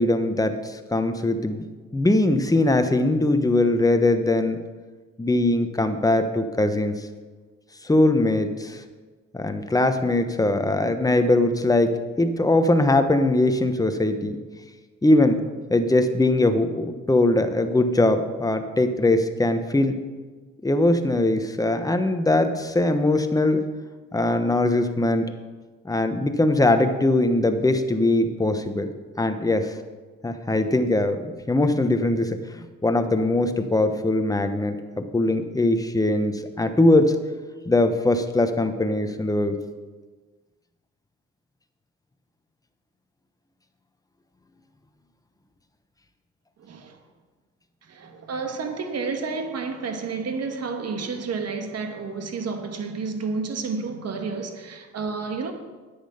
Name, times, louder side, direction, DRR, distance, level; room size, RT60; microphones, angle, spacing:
voice 1, 0.0-1.7 1.9-4.6 5.2-7.1 7.8-8.8 9.3-14.4 15.0-15.4 15.7-19.9 20.6-23.7 24.1-25.3 25.8-28.9 29.2-29.7 30.2-32.4 32.8-37.1 37.7-39.6, left 2 dB, 10° left, 1.0 m, -21 dB
voice 2, 46.6-47.0 47.8-55.5, right 4 dB, 55° right, 1.5 m, -30 dB
10.0 x 8.6 x 5.7 m
cardioid pair, 90°, 30 cm